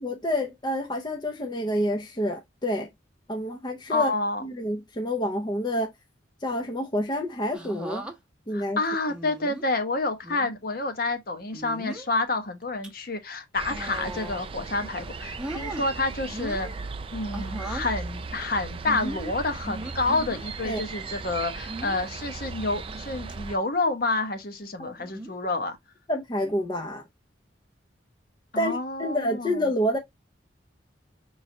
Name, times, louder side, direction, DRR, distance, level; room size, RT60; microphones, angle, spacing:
voice 1, 0.0-2.9 3.3-4.1 4.4-5.9 6.4-8.0 8.5-8.8 20.6-20.8 24.8-24.9 26.1-27.0 28.6-30.0, equal, 25° left, 0.6 m, -28 dB
voice 2, 3.9-4.4 8.5-16.7 17.1-25.8 28.5-29.7, left 2 dB, 50° left, 0.9 m, -29 dB
sound 1, 7.5-8.1 9.1-9.7 10.2-10.5 11.5-12.1 12.6-12.9 13.6-14.5 14.9-15.8 16.3-16.8 17.3-17.9 18.9-20.4 21.7-22.1 22.7-23.0 23.3-23.4 25.0-25.4 26.4-26.7, right 1 dB, 5° right, 0.8 m, -38 dB
sound 2, 13.5-23.6, right 4 dB, 30° right, 0.4 m, -37 dB
5.3 x 3.2 x 2.6 m
head